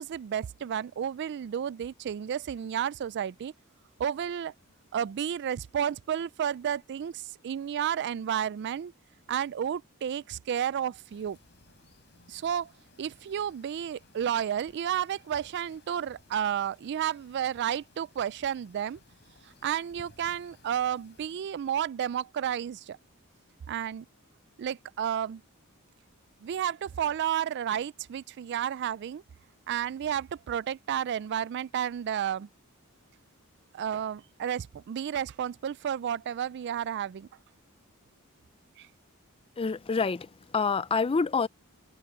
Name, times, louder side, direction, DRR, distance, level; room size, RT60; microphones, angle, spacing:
voice 1, 0.0-3.5 4.0-4.5 4.9-8.9 9.3-11.4 12.3-12.7 13.0-19.0 19.4-23.0 23.7-24.1 24.6-25.4 26.4-29.2 29.7-32.5 33.7-37.3 38.8-38.9, right 9 dB, 50° right, 0.3 m, -31 dB
sound 1, 11.1-21.3, left 2 dB, 55° left, 6.4 m, -60 dB
voice 2, 39.6-41.5, left 4 dB, 25° left, 0.4 m, -27 dB
head